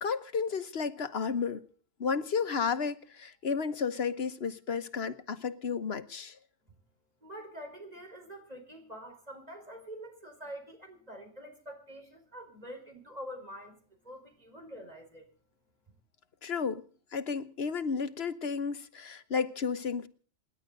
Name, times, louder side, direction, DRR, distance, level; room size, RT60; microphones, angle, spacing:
voice 1, 0.0-1.6 2.0-6.4 16.4-16.8 17.1-20.1, left 5 dB, 55° left, 1.3 m, -32 dB
voice 2, 7.2-15.3, equal, 30° right, 4.7 m, -46 dB
28.0 x 10.5 x 3.9 m
omnidirectional pair, 1.3 m